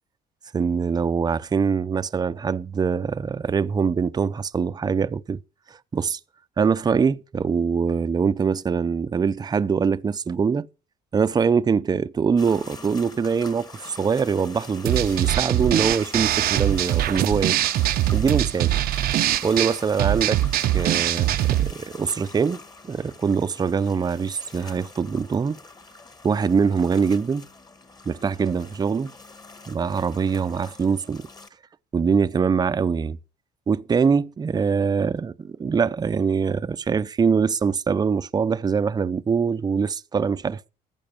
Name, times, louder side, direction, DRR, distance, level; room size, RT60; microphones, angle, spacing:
voice 1, 0.5-5.4 5.7-6.2 6.6-10.7 11.1-17.6 18.1-18.7 19.4-20.4 20.7-22.6 22.9-25.6 26.2-27.5 28.1-29.1 29.7-31.3 31.9-33.2 33.7-40.7, right 5 dB, 25° right, 0.6 m, -23 dB
sound 1, 12.4-31.5, left 3 dB, 25° left, 1.6 m, -44 dB
sound 2, 14.9-21.7, right 13 dB, 65° right, 0.7 m, -22 dB
14.5 x 9.0 x 7.0 m
cardioid pair, 110°, 17 cm